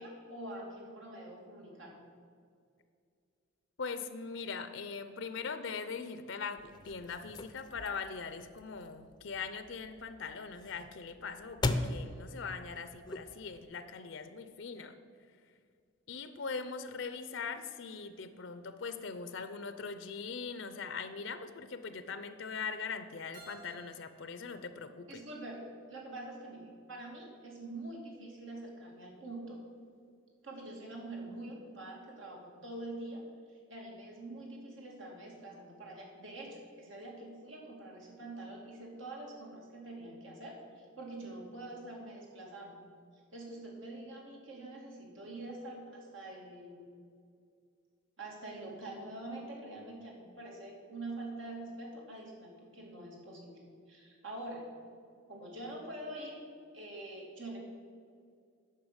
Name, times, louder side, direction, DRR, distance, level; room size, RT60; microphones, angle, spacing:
voice 1, 0.0-1.9 25.1-29.6 30.4-42.8 43.3-46.9 48.2-53.5 53.9-54.6 55.3-56.4 56.7-57.6, right 2 dB, 80° right, -1 dB, 2.6 m, -45 dB
voice 2, 3.8-15.0 16.1-25.2, left 5 dB, 70° left, 11 dB, 0.6 m, -41 dB
sound 1, 6.6-13.7, left 2 dB, 20° left, 0.5 m, -40 dB
Keyboard (musical), 23.3-26.2, right 3 dB, 40° right, 3.1 m, -58 dB
10.5 x 5.8 x 8.0 m, 2.2 s
head